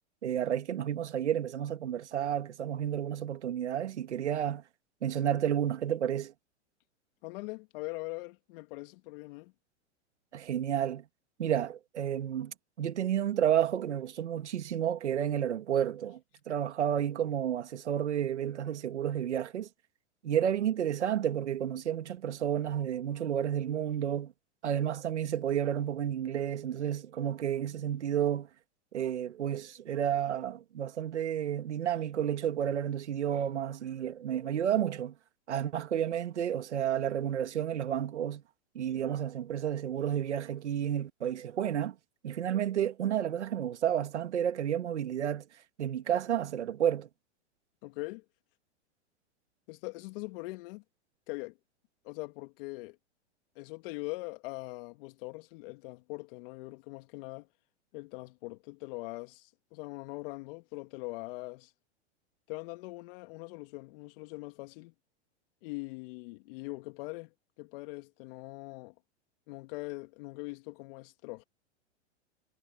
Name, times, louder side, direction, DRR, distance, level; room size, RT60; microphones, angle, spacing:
voice 1, 0.2-4.6 5.0-6.3 10.3-11.0 11.4-16.2 16.5-19.7 20.2-24.3 24.6-28.5 28.9-35.2 35.5-38.4 38.7-42.0 42.2-45.5 45.8-47.1, right 10 dB, 85° right, 2.3 m, -31 dB
voice 2, 7.2-9.5 47.8-48.2 49.7-50.8 51.3-51.6 52.0-53.0 53.6-57.5 57.9-61.7 62.5-64.9 65.6-68.9 69.5-71.4, left 24 dB, 55° left, 2.3 m, -42 dB
hypercardioid pair, 115°, 34 cm